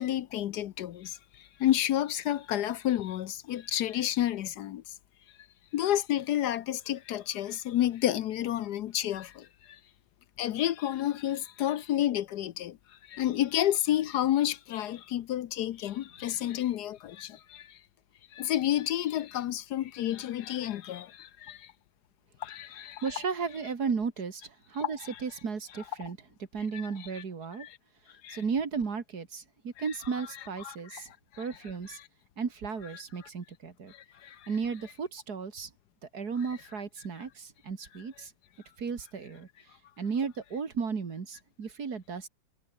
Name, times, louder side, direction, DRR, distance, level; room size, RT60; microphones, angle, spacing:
voice 1, 0.0-4.8 5.7-9.8 10.4-12.8 13.1-17.8 18.3-21.7 22.4-23.0 24.8-25.1 27.6-27.8 28.2-28.4 30.6-31.0 31.3-31.4 33.9-34.5, left 12 dB, 70° left, 1.2 m, -30 dB
voice 2, 23.0-26.2 26.5-27.7 28.3-31.1 31.4-32.0 32.4-33.9 34.5-35.7 36.1-38.3 38.8-39.5 40.0-42.3, right 5 dB, 60° right, 2.7 m, -34 dB
omnidirectional pair, 1.9 m